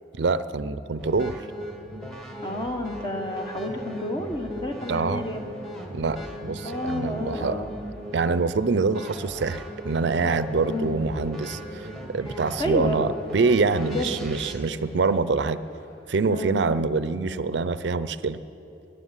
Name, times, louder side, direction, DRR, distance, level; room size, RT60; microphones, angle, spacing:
voice 1, 0.2-1.4 4.9-5.3 5.9-7.6 8.1-15.6 16.1-18.4, right 4 dB, 80° right, 14 dB, 0.5 m, -25 dB
sound 1, 1.0-14.5, equal, 5° left, 1.6 m, -38 dB
voice 2, 2.4-5.6 6.6-7.8 10.6-11.0 12.6-13.0 13.8-14.2 16.3-16.6, left 1 dB, 25° left, 4 dB, 1.3 m, -30 dB
sound 2, 3.1-16.0, equal, 75° left, 4.5 m, -49 dB
14.5 x 10.0 x 9.7 m, 2.9 s
head